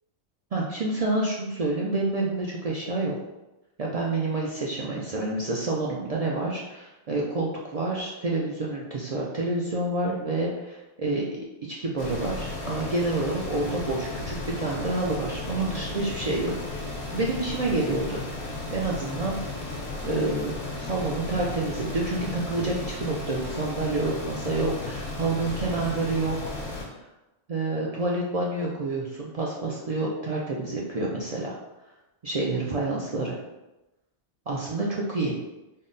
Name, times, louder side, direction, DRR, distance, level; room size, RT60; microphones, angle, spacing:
voice 1, 0.5-3.1 3.8-11.4 11.7-16.5 17.1-18.2 18.7-19.4 20.0-26.5 27.5-31.6 32.2-33.4 34.5-35.4, right 2 dB, 60° right, -3 dB, 0.4 m, -28 dB
sound 1, 12.0-26.8, left 2 dB, 70° left, 1.1 m, -34 dB
3.7 x 2.0 x 3.8 m, 0.99 s
omnidirectional pair, 1.2 m